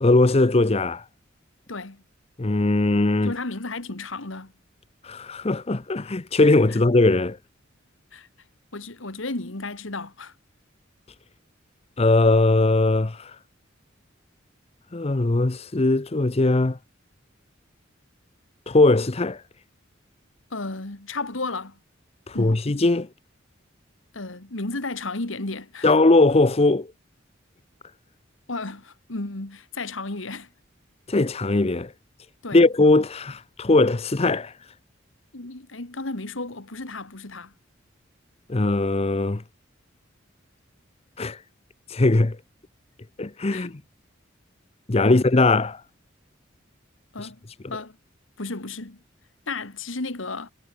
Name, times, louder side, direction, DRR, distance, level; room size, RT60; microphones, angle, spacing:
voice 1, 0.0-1.1 2.4-3.3 5.0-7.4 12.0-13.4 14.9-16.8 18.7-19.4 22.3-23.1 25.8-26.9 31.1-31.9 32.5-34.5 38.5-39.4 41.2-41.4 41.9-42.4 43.2-43.8 44.9-45.8 47.2-47.3 47.6-47.8, left 2 dB, 30° left, 0.7 m, -20 dB
voice 2, 1.7-2.0 3.2-4.5 8.1-8.3 8.7-10.3 20.5-21.8 22.3-22.6 24.1-25.9 28.5-30.5 32.4-32.7 35.3-37.5 43.5-43.7 45.1-45.2 47.1-47.4 47.7-48.0 48.4-49.0 49.5-50.5, left 3 dB, 75° left, 2.1 m, -33 dB
head